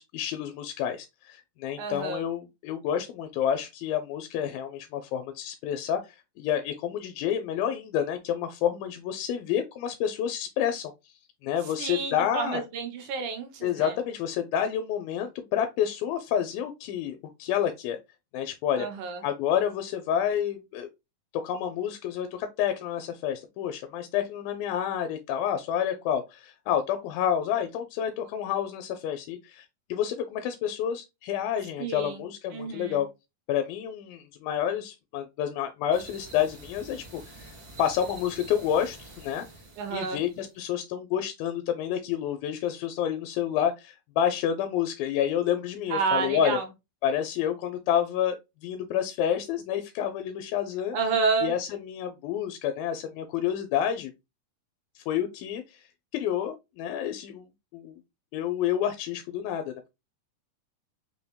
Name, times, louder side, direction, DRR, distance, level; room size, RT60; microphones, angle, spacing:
voice 1, 0.0-11.1 11.4-12.6 13.6-18.0 18.3-18.9 19.2-20.9 21.4-33.1 33.5-39.5 39.9-46.6 47.0-51.0 51.4-54.1 55.0-55.9 56.1-57.5 57.7-57.9 58.3-59.9, left 9 dB, 85° left, 2.3 m, -29 dB
voice 2, 1.8-2.2 11.8-13.9 18.8-19.2 31.8-32.2 32.5-33.0 39.8-40.2 45.9-46.6 50.9-51.5, right 5 dB, 70° right, 2.2 m, -29 dB
sound 1, 35.9-40.6, right 2 dB, 40° right, 1.4 m, -47 dB
5.5 x 3.4 x 2.2 m
omnidirectional pair, 4.1 m